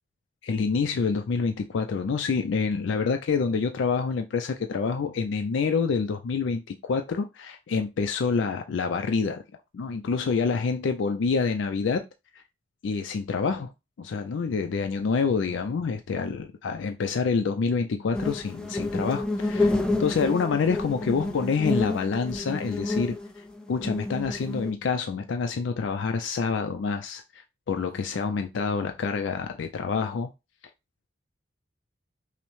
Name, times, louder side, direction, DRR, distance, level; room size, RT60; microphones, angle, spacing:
voice 1, 0.4-9.4 9.7-12.0 12.8-13.7 14.0-30.3, left 5 dB, 75° left, 0.4 m, -27 dB
sound 1, 18.1-24.7, left 2 dB, 5° left, 0.4 m, -29 dB
5.6 x 2.0 x 3.1 m
head